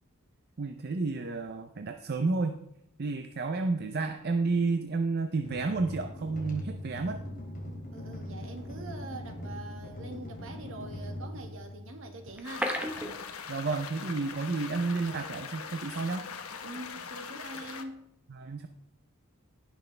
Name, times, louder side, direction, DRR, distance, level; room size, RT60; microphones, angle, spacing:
voice 1, 0.6-2.6 3.0-7.2 13.5-16.3 18.3-18.7, right 3 dB, 50° right, 7 dB, 0.5 m, -31 dB
sound 1, 5.4-12.3, equal, 40° left, 2.9 m, -41 dB
voice 2, 7.9-12.7 16.6-18.0, right 2 dB, 65° right, 4 dB, 1.6 m, -44 dB
sound 2, 12.3-14.1 14.3-14.4 14.9-15.0, equal, 5° right, 0.9 m, -34 dB
sound 3, 12.4-17.8, left 6 dB, 85° left, 1.0 m, -42 dB
17.0 x 6.2 x 3.3 m, 0.78 s
head